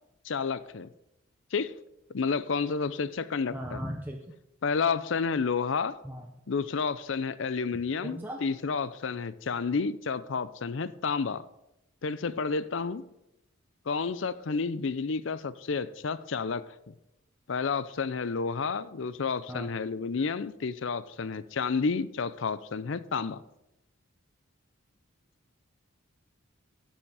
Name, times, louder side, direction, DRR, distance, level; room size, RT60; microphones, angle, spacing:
voice 1, 0.2-0.9 1.5-1.7 2.1-3.9 4.6-6.0 6.5-11.4 12.0-13.0 13.9-16.9 17.5-23.4, left 5 dB, 65° left, 16 dB, 0.5 m, -30 dB
voice 2, 3.5-4.2 6.0-6.2 8.0-8.4 19.5-19.7, equal, 10° right, 1 dB, 0.7 m, -37 dB
11.0 x 7.2 x 4.8 m, 0.87 s
head